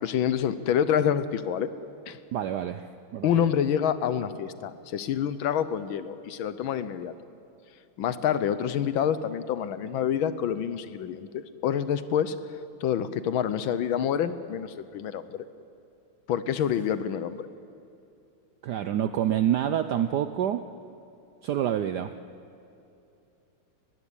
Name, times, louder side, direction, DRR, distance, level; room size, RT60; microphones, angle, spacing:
voice 1, 0.0-1.7 2.1-2.2 3.2-7.1 8.0-12.3 12.8-15.4 16.3-17.5, left 9 dB, 70° left, 14 dB, 1.5 m, -27 dB
voice 2, 2.3-3.5 18.6-20.6 21.4-22.1, right 10 dB, 75° right, 10 dB, 0.9 m, -27 dB
20.5 x 15.5 x 9.9 m, 2.7 s
omnidirectional pair, 2.4 m